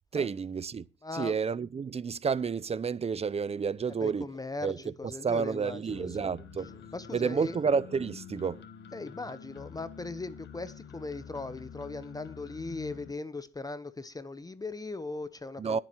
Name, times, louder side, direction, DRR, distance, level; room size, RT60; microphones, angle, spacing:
voice 1, 0.1-0.8 1.1-4.3 4.6-4.8 5.2-6.8 7.1-8.6 15.6-15.8, right 5 dB, 30° right, 0.6 m, -30 dB
voice 2, 1.0-1.4 4.0-6.3 6.9-7.6 8.9-15.8, left 3 dB, 20° left, 1.0 m, -39 dB
sound 1, 5.9-13.1, left 7 dB, 60° left, 1.4 m, -47 dB
21.5 x 7.6 x 3.0 m
cardioid pair, 90°, 20 cm